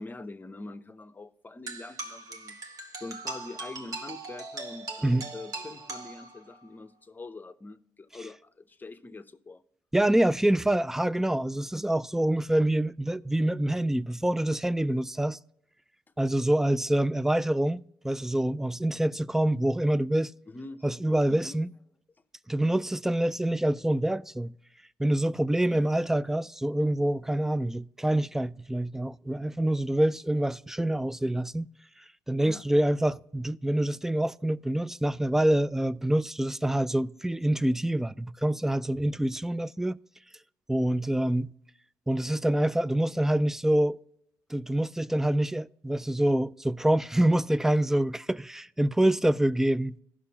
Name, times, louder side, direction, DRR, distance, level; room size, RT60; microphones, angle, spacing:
voice 1, 0.0-2.6 3.0-9.6 20.5-20.9 21.3-21.6 25.6-25.9 32.4-32.6, left 3 dB, 25° left, 0.7 m, -44 dB
sound 1, 1.7-6.7, right 2 dB, 50° right, 1.4 m, -40 dB
voice 2, 9.9-15.4 16.2-20.3 20.8-21.7 22.5-24.5 25.0-31.7 32.3-40.0 40.7-41.5 42.1-44.0 44.5-50.0, right 1 dB, 5° right, 0.3 m, -26 dB
15.5 x 6.1 x 2.8 m
supercardioid pair, 60°, 8 cm